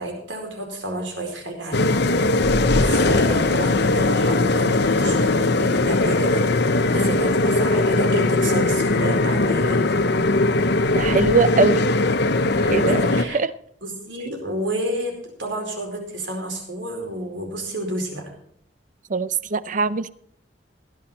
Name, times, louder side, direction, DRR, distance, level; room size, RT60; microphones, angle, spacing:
voice 1, 0.0-2.0 2.8-6.4 6.9-10.0 12.6-13.4 13.8-15.1 15.4-18.3, right 1 dB, 80° right, 2 dB, 4.6 m, -30 dB
sound 1, 1.7-13.2, left 2 dB, 65° left, 0.8 m, -20 dB
voice 2, 10.9-11.9 12.7-13.0 13.3-13.5 19.1-20.1, right 4 dB, 45° right, 16 dB, 0.6 m, -21 dB
16.0 x 10.5 x 4.3 m, 0.68 s
head